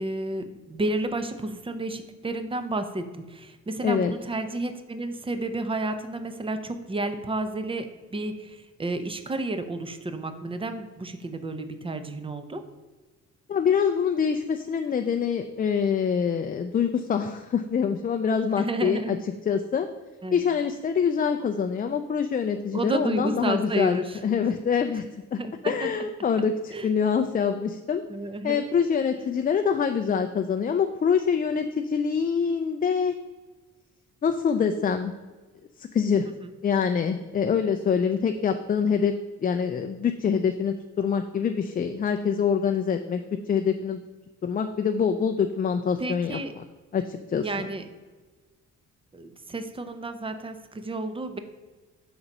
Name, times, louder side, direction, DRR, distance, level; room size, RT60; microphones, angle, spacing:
voice 1, 0.0-12.6 18.6-19.2 20.2-20.4 22.7-24.2 25.4-25.9 26.7-26.9 28.1-28.6 36.4-36.5 46.0-46.5 47.4-47.9 49.1-51.4, right 2 dB, 20° right, 9 dB, 0.6 m, -31 dB
voice 2, 3.8-4.1 13.5-19.2 19.5-19.9 20.3-25.0 25.3-25.4 25.7-28.0 28.4-33.2 34.2-35.1 35.8-36.3 36.6-39.1 39.4-43.2 43.5-44.0 44.4-46.4 46.9-47.7, left 6 dB, 30° left, 7 dB, 0.4 m, -25 dB
6.0 x 3.9 x 5.3 m, 1.3 s
cardioid pair, 90°, 30 cm